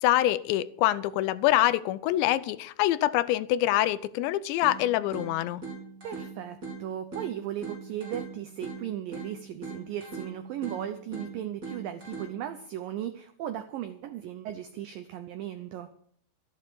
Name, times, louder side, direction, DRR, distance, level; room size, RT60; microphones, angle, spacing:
voice 1, 0.0-5.6, left 14 dB, 85° left, 15 dB, 2.9 m, -25 dB
sound 1, 4.6-12.6, right 4 dB, 20° right, 4.4 m, -42 dB
voice 2, 6.0-15.9, right 11 dB, 90° right, 9 dB, 2.0 m, -36 dB
14.0 x 8.2 x 6.9 m, 0.64 s
omnidirectional pair, 5.1 m